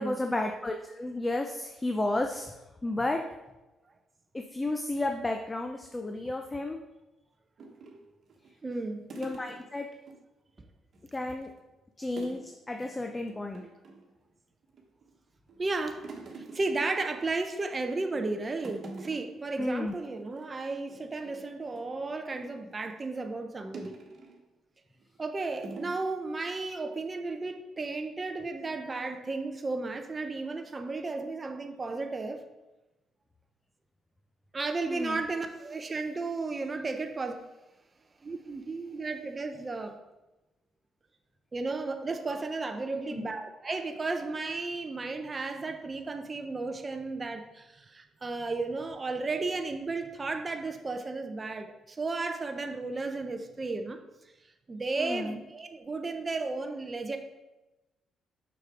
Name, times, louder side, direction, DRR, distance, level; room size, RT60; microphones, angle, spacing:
voice 1, 0.0-2.5 2.8-3.2 4.3-6.8 9.2-9.9 11.1-11.5 12.0-13.7 19.6-19.9 34.9-35.2 43.1-43.3 55.0-55.4, left 2 dB, 20° left, 4 dB, 0.6 m, -32 dB
sound 1, 7.6-10.2 10.5-10.6 10.9-11.6 12.2-12.5 12.8-12.9 13.3-14.1 14.6-15.2 15.5-17.6 18.0-18.3 18.6-19.4 19.8-19.9 20.2-20.5 20.9-22.7 23.7-24.4 25.0-25.2 25.6-26.0, right 3 dB, 55° right, 1.4 m, -46 dB
voice 2, 8.6-9.1 15.6-16.1 16.4-24.0 25.2-32.4 34.5-37.4 38.2-40.0 41.5-54.0 54.7-57.2, right 3 dB, 30° right, 5 dB, 0.6 m, -34 dB
6.3 x 6.0 x 3.7 m, 1.0 s
cardioid pair, 90°, 0 cm